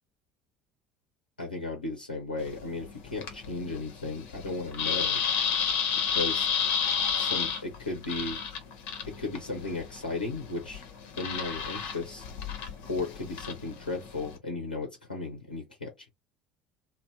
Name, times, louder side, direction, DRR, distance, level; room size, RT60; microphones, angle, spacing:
voice 1, 1.4-5.2 6.1-6.5 7.1-8.4 9.1-10.8 11.2-12.3 12.9-16.1, left 3 dB, 85° left, 0.7 m, -35 dB
sound 1, 2.4-14.4, left 7 dB, 60° left, 0.8 m, -32 dB
2.7 x 2.0 x 3.4 m
figure-of-eight pair, 65°, 5 cm